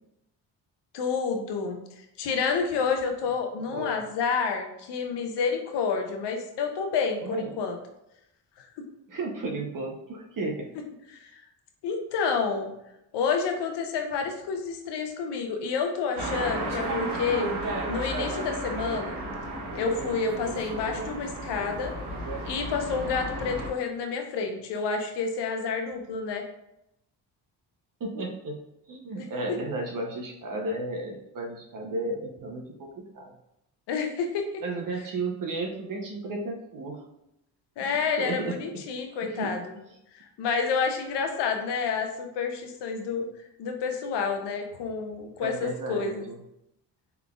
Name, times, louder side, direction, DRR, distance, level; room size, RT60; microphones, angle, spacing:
voice 1, 0.9-1.8 2.2-7.8 8.8-8.9 11.1-11.3 11.8-12.7 13.1-17.5 17.9-19.2 19.7-21.9 22.5-26.4 29.2-29.3 33.9-34.6 37.8-39.6 40.1-43.3 43.6-46.2, left 5 dB, 80° left, 5 dB, 0.7 m, -29 dB
voice 2, 3.6-4.0 7.2-7.6 9.1-10.7 28.0-28.6 28.9-33.3 34.6-37.0 37.8-38.6 39.2-39.5 45.4-46.4, right 2 dB, 50° right, 1 dB, 0.7 m, -34 dB
sound 1, 16.2-23.7, right 2 dB, 75° right, 0.9 m, -33 dB
3.8 x 3.4 x 2.3 m, 0.82 s
cardioid pair, 75°, 41 cm